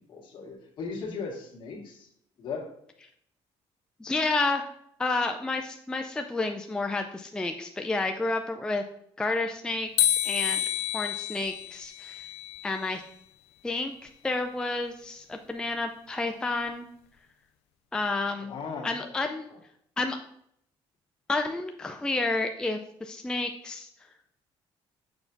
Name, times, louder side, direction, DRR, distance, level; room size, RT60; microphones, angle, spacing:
voice 1, 0.1-2.1 2.4-2.7 18.4-19.1 19.5-19.6, left 5 dB, 55° left, 0 dB, 1.7 m, -37 dB
voice 2, 4.0-4.7 5.0-8.8 9.2-10.6 10.9-12.3 12.6-13.0 13.6-13.9 14.2-16.9 17.9-18.5 18.8-19.5 20.0-20.2 21.3-23.9, left 3 dB, 10° left, 5 dB, 0.4 m, -30 dB
sound 1, 10.0-13.1, left 11 dB, 90° left, 0.4 m, -29 dB
6.9 x 5.7 x 2.6 m, 0.71 s
cardioid pair, 125°, 10 cm